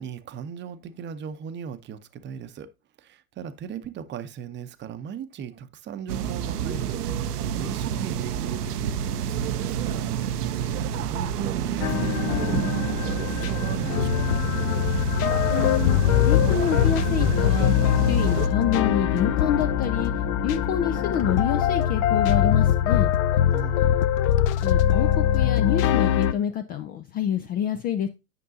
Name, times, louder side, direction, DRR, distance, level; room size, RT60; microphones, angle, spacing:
voice 1, 0.0-2.7 3.0-10.4 10.7-14.5 23.5-23.9, right 8 dB, 25° right, 0.7 m, -38 dB
sound 1, 6.1-18.5, right 9 dB, 80° right, 0.8 m, -29 dB
sound 2, 11.8-26.3, left 11 dB, 60° left, 0.7 m, -23 dB
voice 2, 15.5-16.0 16.2-20.1 20.4-23.1 24.6-28.1, left 9 dB, 20° left, 0.3 m, -27 dB
sound 3, 15.6-26.0, left 4 dB, 40° left, 1.1 m, -34 dB
9.5 x 5.3 x 2.7 m
hypercardioid pair, 95°, 46 cm